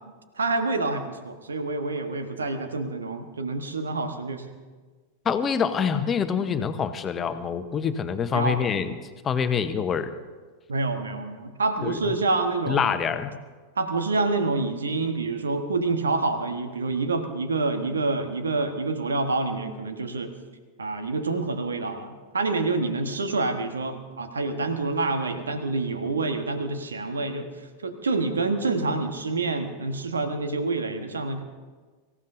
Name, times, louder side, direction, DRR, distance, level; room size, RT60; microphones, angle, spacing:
voice 1, 0.4-4.4 8.3-8.6 10.7-12.9 13.8-20.3 20.8-27.5 27.8-31.4, right 3 dB, 70° right, 7 dB, 1.4 m, -27 dB
voice 2, 5.2-8.9 9.2-10.1 11.8-12.1 12.7-13.3, left 7 dB, 25° left, 10 dB, 0.9 m, -26 dB
24.0 x 15.0 x 2.7 m, 1.4 s
figure-of-eight pair, 90°, 0 cm